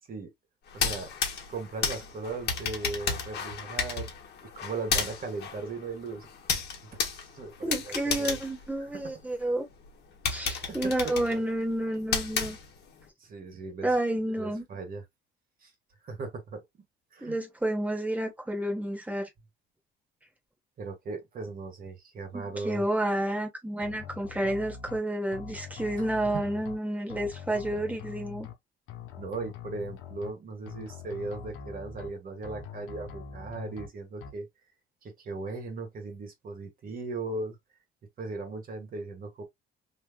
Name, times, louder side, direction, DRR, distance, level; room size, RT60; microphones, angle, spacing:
sound 1, 0.7-9.4 9.8-9.9 10.3-13.0, left 6 dB, 55° left, 1.2 m, -33 dB
voice 1, 0.7-1.1 1.5-4.1 4.5-6.3 7.3-8.4 8.8-9.1 10.4-10.8 11.0-11.4 13.2-13.9 14.4-15.0 15.6-15.7 16.0-16.8 17.1-17.4 20.8-22.9 26.0-26.1 26.3-26.4 29.2-34.5 35.0-37.6 38.2-39.4, right 3 dB, 45° right, 1.6 m, -38 dB
voice 2, 7.6-9.6 10.2-12.6 13.8-14.6 17.2-19.3 22.3-28.5, right 1 dB, 5° right, 1.2 m, -30 dB
sound 2, 23.8-25.0 25.3-26.8 27.1-28.5 28.9-30.3 30.7-32.1 32.4-33.9 34.2-34.3, left 6 dB, 80° left, 0.9 m, -43 dB
3.2 x 3.1 x 2.2 m
cardioid pair, 130°, 21 cm